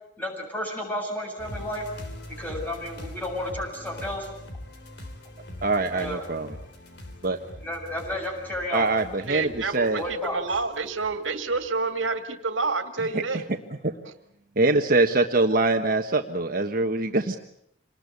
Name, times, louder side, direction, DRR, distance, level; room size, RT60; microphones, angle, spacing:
voice 1, 0.2-1.9 2.4-4.3 5.9-6.3 7.6-8.9 10.0-10.4, left 1 dB, 10° left, -1 dB, 7.7 m, -32 dB
sound 1, 1.4-11.6 12.1-12.2, left 1 dB, 60° left, 3.8 m, -42 dB
voice 2, 5.6-6.5 7.2-7.4 8.7-10.0 13.8-13.9 14.6-17.4, right 2 dB, 50° right, 5 dB, 1.3 m, -23 dB
voice 3, 9.2-13.5 14.1-14.2, right 4 dB, 80° right, 8 dB, 2.1 m, -29 dB
27.0 x 20.5 x 8.4 m, 0.75 s
head